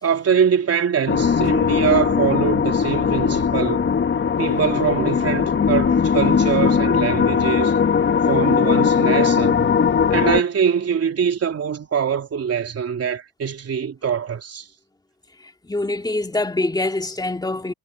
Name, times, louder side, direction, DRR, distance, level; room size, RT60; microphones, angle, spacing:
voice 1, 0.0-3.9 4.4-7.8 8.3-9.7 10.1-14.7, right 7 dB, 35° right, 3.7 m, -23 dB
sound 1, 1.1-10.4, left 6 dB, 25° left, 1.8 m, -19 dB
voice 2, 15.6-17.7, left 2 dB, 10° left, 2.8 m, -24 dB
supercardioid pair, 105°, 43 cm